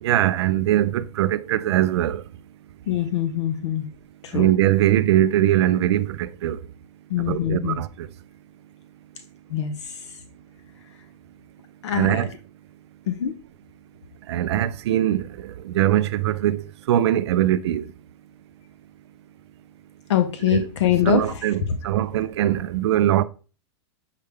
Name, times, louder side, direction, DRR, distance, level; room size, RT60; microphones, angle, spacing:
voice 1, 0.0-2.2 4.3-6.6 7.2-8.1 11.9-12.3 14.3-17.9 20.4-20.7 21.1-23.2, right 12 dB, 70° right, 0.4 m, -21 dB
voice 2, 2.9-3.9 4.2-4.5 7.1-7.8 9.5-10.0 11.8-12.3 13.1-13.3 20.1-21.4, left 10 dB, 80° left, 0.6 m, -24 dB
6.5 x 2.3 x 3.4 m
hypercardioid pair, 140°, 15 cm